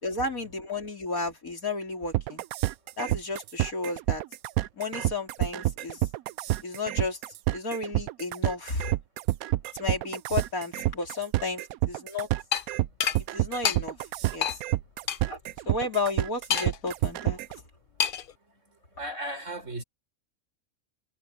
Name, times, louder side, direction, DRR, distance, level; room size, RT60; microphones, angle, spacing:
voice 1, 0.0-2.4 3.0-4.2 4.8-6.1 6.6-7.2 7.5-8.9 9.8-12.3 13.3-14.0 14.3-14.6 15.3-15.4 15.7-17.4, left 3 dB, 80° left, 4.7 m, -32 dB
sound 1, 2.1-17.6, right 16 dB, 85° right, 1.0 m, -28 dB
sound 2, 12.5-12.6 13.0-13.2 13.6-13.8 14.4-14.6 15.1-15.2 16.5-16.9 18.0-18.3, left 8 dB, 55° left, 0.6 m, -26 dB
voice 2, 19.0-19.8, right 1 dB, 60° right, 5.2 m, -35 dB
omnidirectional pair, 1.5 m